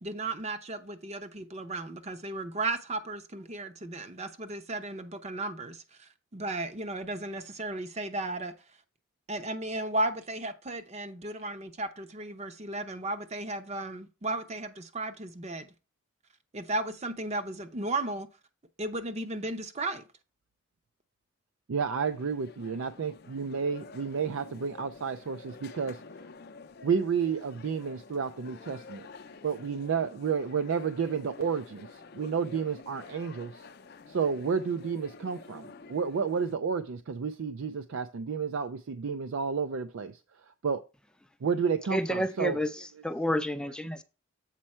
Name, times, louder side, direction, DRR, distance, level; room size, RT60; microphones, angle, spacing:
voice 1, 0.0-8.5 9.3-15.7 16.5-18.3 18.8-20.0, right 2 dB, 30° right, 0.7 m, -35 dB
voice 2, 21.7-26.0 26.8-29.1 29.4-33.7 34.1-40.2 40.6-40.8 41.4-42.6, right 6 dB, 70° right, 0.4 m, -31 dB
sound 1, 22.1-36.6, left 4 dB, 50° left, 0.5 m, -50 dB
voice 3, 41.9-44.0, equal, 5° left, 0.4 m, -30 dB
7.5 x 4.4 x 4.3 m
head